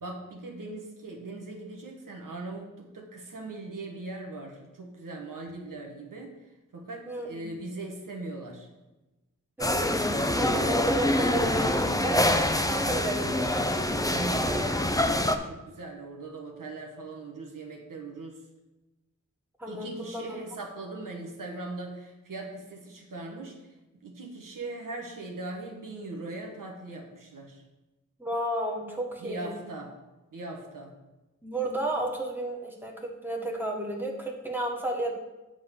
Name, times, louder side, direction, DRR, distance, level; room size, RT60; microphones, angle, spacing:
voice 1, 0.0-8.7 13.9-15.1 15.4-18.4 19.7-23.6 24.0-27.6 29.2-29.9 30.3-30.9, right 2 dB, 85° right, 1 dB, 1.4 m, -40 dB
voice 2, 7.1-7.4 9.6-12.3 12.7-13.8 19.6-20.3 28.2-29.6 31.4-35.1, right 1 dB, 5° right, 0 dB, 1.6 m, -32 dB
sound 1, 9.6-15.4, left 1 dB, 10° left, 0.6 m, -25 dB
8.0 x 3.8 x 6.8 m, 1.0 s
cardioid pair, 50°, 32 cm